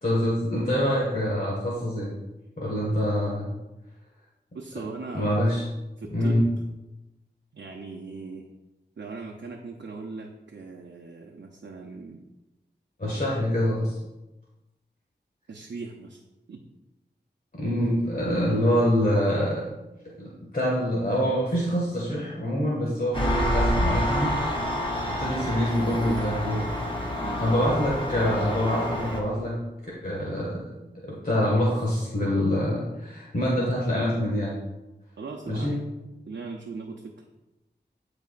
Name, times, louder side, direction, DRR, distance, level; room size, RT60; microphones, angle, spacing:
voice 1, 0.0-2.1 2.6-3.5 5.1-5.6 6.1-6.4 13.0-14.0 17.5-19.6 20.2-24.3 25.1-27.0 27.4-29.6 30.0-30.6 31.0-34.6 35.5-35.8, equal, 50° left, -5 dB, 1.7 m, -25 dB
voice 2, 4.5-5.4 6.0-6.5 7.5-8.5 9.0-12.2 15.5-16.2 16.5-16.6 27.2-27.4 35.2-35.7 36.3-37.1, right 4 dB, 80° right, 1 dB, 0.7 m, -39 dB
Engine, 23.1-29.2, equal, 30° left, 1.7 m, -28 dB
12.5 x 4.8 x 2.5 m, 1.0 s
wide cardioid pair, 60°, 18 cm